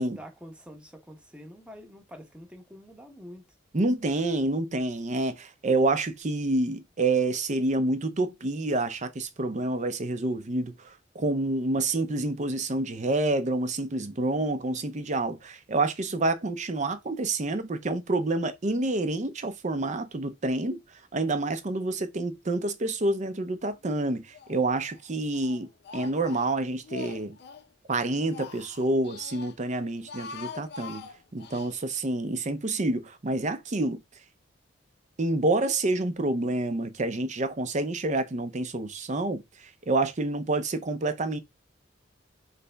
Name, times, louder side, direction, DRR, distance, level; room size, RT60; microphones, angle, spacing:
voice 1, 0.0-3.4, equal, 5° right, 0.9 m, -46 dB
voice 2, 3.7-20.8 21.1-27.4 27.9-34.0 35.2-41.4, right 2 dB, 40° right, 0.6 m, -28 dB
Speech, 23.8-24.6 24.9-27.7 28.1-29.5 29.9-31.7, left 5 dB, 60° left, 0.6 m, -44 dB
4.0 x 3.3 x 3.3 m
head